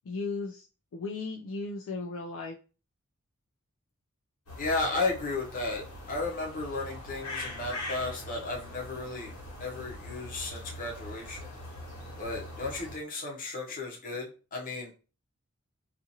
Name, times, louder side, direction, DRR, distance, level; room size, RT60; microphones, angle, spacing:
voice 1, 0.1-0.6 0.9-2.6, left 3 dB, 60° left, 1 dB, 0.3 m, -36 dB
sound 1, 4.5-13.0, left 1 dB, 85° left, 1.2 m, -42 dB
voice 2, 4.6-5.8 6.1-9.3 9.6-11.5 12.2-14.9, left 3 dB, 40° left, -1 dB, 0.7 m, -34 dB
2.6 x 2.5 x 2.7 m, 0.34 s
head